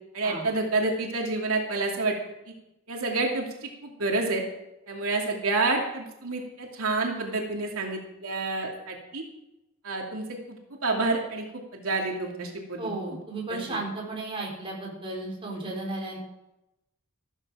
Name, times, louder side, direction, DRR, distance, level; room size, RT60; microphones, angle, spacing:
voice 1, 0.1-2.2 2.9-4.4 4.9-9.2 9.8-12.9 13.5-13.8, right 3 dB, 85° right, 0 dB, 2.7 m, -29 dB
voice 2, 12.8-16.2, right 2 dB, 25° right, -2 dB, 4.3 m, -34 dB
14.0 x 13.5 x 5.0 m, 0.93 s
head